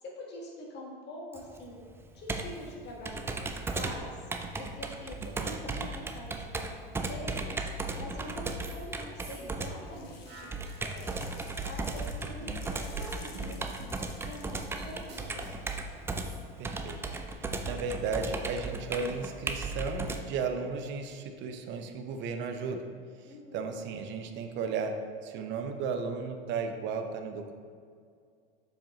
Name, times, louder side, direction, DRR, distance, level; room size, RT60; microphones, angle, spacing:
voice 1, 0.0-1.8 2.1-4.3 4.6-7.4 8.0-11.4 11.6-13.6 14.2-15.5 23.2-23.7, left 1 dB, 35° left, -2 dB, 1.5 m, -45 dB
Computer keyboard, 1.3-20.2, right 3 dB, 10° right, 0.3 m, -36 dB
sound 1, 8.6-8.9 9.2-11.4 11.8-16.4, right 3 dB, 80° right, 1.4 m, -46 dB
sound 2, 9.8-15.3, left 5 dB, 85° left, 0.8 m, -54 dB
voice 2, 16.6-17.0 17.4-22.8 23.5-24.9 25.2-27.5, right 5 dB, 40° right, 6 dB, 0.7 m, -34 dB
7.1 x 5.0 x 3.0 m, 2.2 s
hypercardioid pair, 85°, 29 cm